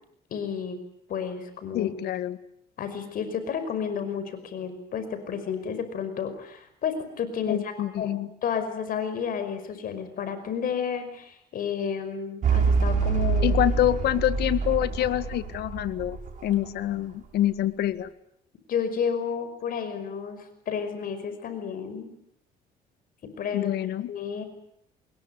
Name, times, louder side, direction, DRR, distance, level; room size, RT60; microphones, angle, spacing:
voice 1, 0.3-0.8 1.1-1.9 2.8-8.1 8.4-13.6 18.7-22.1 23.4-23.7 24.1-24.4, left 7 dB, 55° left, 11 dB, 5.4 m, -31 dB
voice 2, 1.7-2.4 7.5-8.3 13.4-18.1 23.5-24.1, left 13 dB, 75° left, 14 dB, 1.8 m, -26 dB
sound 1, 12.4-17.0, right 5 dB, 50° right, 7.1 m, -26 dB
27.0 x 21.5 x 9.8 m, 0.72 s
cardioid pair, 110°, 17 cm